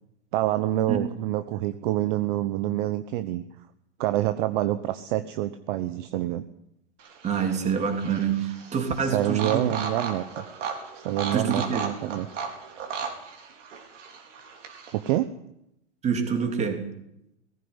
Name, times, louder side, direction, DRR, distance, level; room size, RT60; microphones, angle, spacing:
voice 1, 0.3-3.4 4.0-6.4 9.0-10.5 11.0-12.3 14.9-15.3, right 14 dB, 45° right, 11 dB, 1.1 m, -27 dB
sound 1, 7.0-15.2, right 5 dB, 80° right, 4.8 m, -36 dB
voice 2, 7.2-9.7 11.3-11.9 16.0-16.9, right 6 dB, 20° right, 6 dB, 3.2 m, -26 dB
18.5 x 15.5 x 9.8 m, 0.81 s
hypercardioid pair, 145°, 36 cm